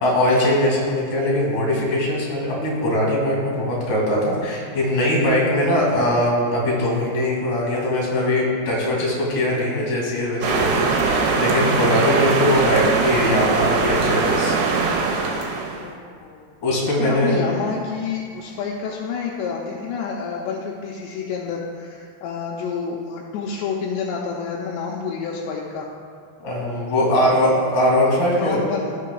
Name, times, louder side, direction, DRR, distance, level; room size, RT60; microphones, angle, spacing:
voice 1, 0.0-14.6 15.3-15.8 16.6-17.4 26.4-28.6, left 1 dB, 55° left, -3 dB, 3.7 m, -21 dB
sound 1, 10.4-15.9, right 4 dB, 80° right, 2.7 m, -21 dB
voice 2, 15.7-16.5 17.0-25.9 27.1-27.3 28.4-29.0, left 5 dB, 85° left, -2 dB, 2.8 m, -29 dB
16.5 x 6.6 x 2.3 m, 2.1 s
omnidirectional pair, 5.2 m